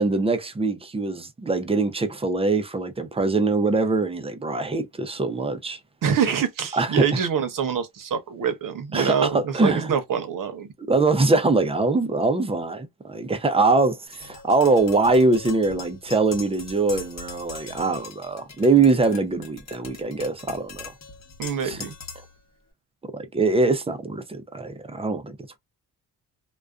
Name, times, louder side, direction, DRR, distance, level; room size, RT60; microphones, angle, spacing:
voice 1, 0.0-5.8 6.7-7.2 8.9-9.9 10.9-20.9 21.6-21.8 23.1-25.3, right 3 dB, 15° right, 0.4 m, -23 dB
voice 2, 6.0-10.7 21.4-21.9, right 7 dB, 55° right, 0.7 m, -25 dB
Tap, 14.1-22.4, left 4 dB, 45° left, 0.9 m, -41 dB
2.4 x 2.2 x 2.3 m
cardioid pair, 90°, 38 cm